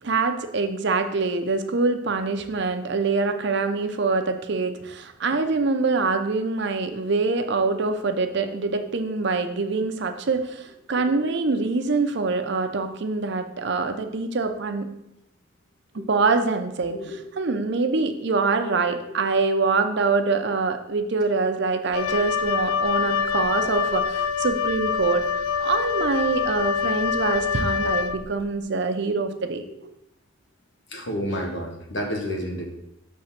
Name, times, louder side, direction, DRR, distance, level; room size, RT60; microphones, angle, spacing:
voice 1, 0.0-14.9 16.1-17.0 17.4-25.2 25.6-29.6, right 4 dB, 55° right, 7 dB, 0.6 m, -24 dB
voice 2, 16.9-17.3 19.1-19.2 30.9-32.7, equal, 60° left, 2 dB, 1.2 m, -31 dB
Wind instrument woodwind instrument, 21.9-28.5, left 6 dB, 85° left, 0.3 m, -25 dB
6.4 x 3.5 x 5.7 m, 0.84 s
head